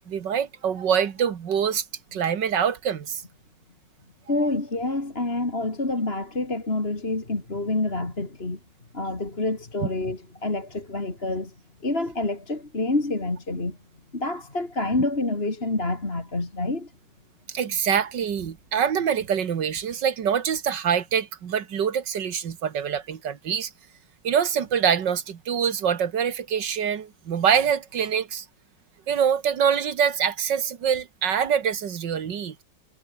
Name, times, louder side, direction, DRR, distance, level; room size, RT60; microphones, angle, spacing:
voice 1, 0.1-1.8 2.1-3.2 17.5-23.7 24.2-28.5 29.1-32.6, right 8 dB, 75° right, 2.2 m, -25 dB
voice 2, 4.3-8.6 8.9-11.5 11.8-13.8 14.1-16.9, left 2 dB, 30° left, 3.5 m, -27 dB
omnidirectional pair, 1.9 m